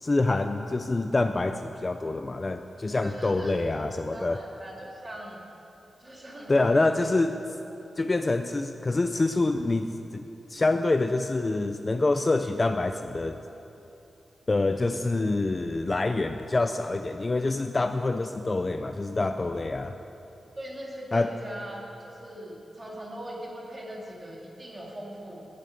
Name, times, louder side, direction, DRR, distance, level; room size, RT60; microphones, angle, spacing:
voice 1, 0.0-4.4 6.5-7.4 8.0-13.4 14.5-20.0 21.1-21.3, left 2 dB, 25° left, 8 dB, 0.4 m, -26 dB
voice 2, 3.0-5.4 6.0-7.2 19.2-19.5 20.6-25.5, right 1 dB, 20° right, -3 dB, 2.4 m, -40 dB
11.5 x 8.8 x 9.2 m, 2.9 s
wide cardioid pair, 150°, 0 cm